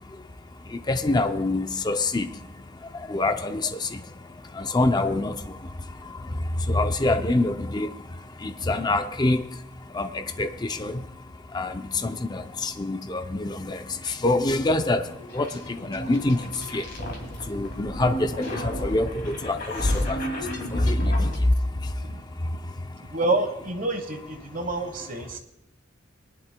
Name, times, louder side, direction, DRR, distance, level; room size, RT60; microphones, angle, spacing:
voice 1, 0.9-2.3 3.1-4.0 4.6-5.4 6.7-7.9 8.4-9.4 9.9-11.0 11.5-13.8 14.1-15.1 15.3-16.4 16.7-16.8 17.5-20.2 20.7-21.3, left 2 dB, 20° left, 0.5 m, -25 dB
sound 1, 13.9-21.4, equal, 50° left, 2.5 m, -34 dB
Hiss, 15.9-21.4, left 1 dB, 80° left, 4.9 m, -35 dB
voice 2, 23.1-25.4, right 2 dB, 45° right, 1.2 m, -28 dB
22.0 x 11.0 x 2.2 m
head